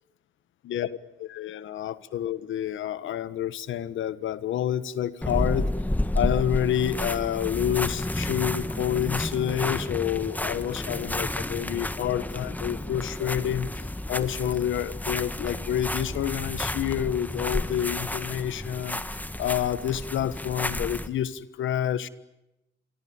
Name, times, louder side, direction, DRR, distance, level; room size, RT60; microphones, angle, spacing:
voice 1, 1.2-5.7 6.1-13.7 14.1-22.1, left 10 dB, 85° left, 15 dB, 1.4 m, -28 dB
sound 1, 5.2-21.1, left 1 dB, 10° left, 1.6 m, -31 dB
27.5 x 23.5 x 8.9 m, 0.91 s
cardioid pair, 90°, 20 cm